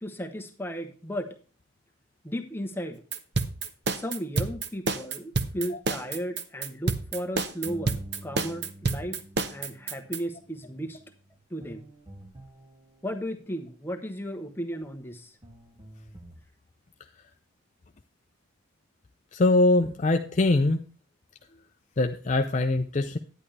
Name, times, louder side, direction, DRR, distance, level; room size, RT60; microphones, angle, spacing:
voice 1, 0.0-1.4 2.2-3.0 3.9-9.2 9.5-11.0 11.5-11.9 13.0-15.3, equal, 10° left, 6 dB, 0.9 m, -35 dB
sound 1, 3.1-10.2, right 3 dB, 55° right, 0.8 m, -28 dB
sound 2, 7.6-13.6 14.8-14.9 15.4-16.5, equal, 20° right, 0.9 m, -48 dB
voice 2, 19.3-20.8 22.0-23.2, left 2 dB, 35° left, 6 dB, 0.5 m, -23 dB
11.0 x 9.9 x 3.3 m, 0.39 s
head